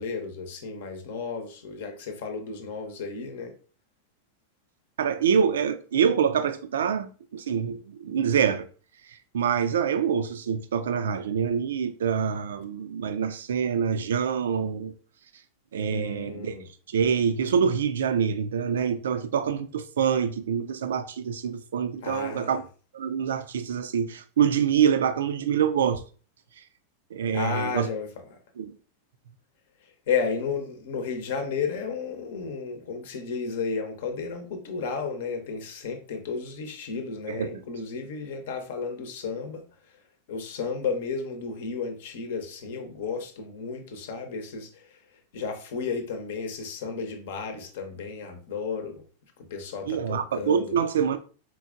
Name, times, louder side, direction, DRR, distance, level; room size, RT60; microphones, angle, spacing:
voice 1, 0.0-3.5 15.9-16.6 22.0-22.6 27.3-28.4 29.8-39.7 40.3-45.0 45.3-49.0 49.4-50.8, left 5 dB, 55° left, 0.8 m, -33 dB
voice 2, 5.0-8.7 9.3-14.9 15.7-16.6 16.9-22.7 22.9-26.0 27.1-27.9 28.6-28.7 37.4-37.6 49.9-51.2, right 7 dB, 65° right, 0.4 m, -25 dB
4.5 x 3.7 x 2.4 m
figure-of-eight pair, 90°, 0 cm